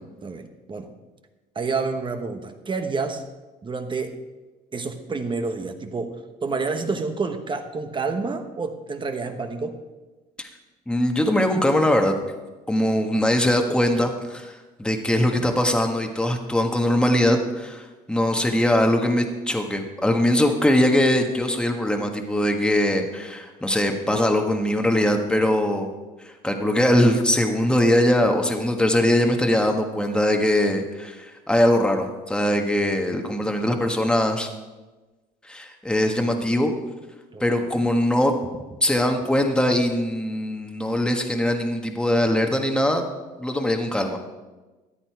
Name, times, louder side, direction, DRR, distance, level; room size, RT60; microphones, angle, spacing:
voice 1, 0.2-0.9 1.5-3.2 3.6-4.2 4.7-9.8 37.3-37.4 37.7-37.8, right 4 dB, 30° right, 7 dB, 1.1 m, -29 dB
voice 2, 10.9-12.2 12.7-25.9 26.2-34.5 35.5-36.7 37.4-38.3 38.8-43.0 43.4-44.2, left 1 dB, 5° left, 4 dB, 1.4 m, -21 dB
14.0 x 9.6 x 4.7 m, 1.2 s
cardioid pair, 110°, 17 cm